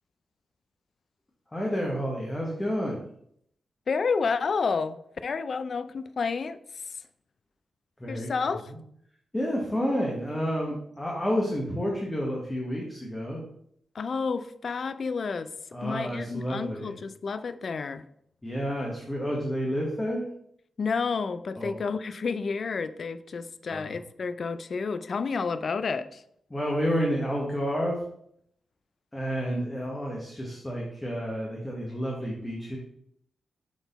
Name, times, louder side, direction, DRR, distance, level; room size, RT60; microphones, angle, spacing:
voice 1, 1.5-3.0 8.0-8.8 9.3-13.4 15.7-17.0 18.4-20.2 21.5-21.8 23.7-24.0 26.5-28.0 29.1-32.8, equal, 15° left, 1.0 m, -30 dB
voice 2, 3.9-6.6 8.1-8.6 13.9-15.5 15.8-18.0 20.8-26.2, left 5 dB, 50° left, 0.3 m, -30 dB
5.9 x 4.0 x 4.0 m
wide cardioid pair, 125°, 0 cm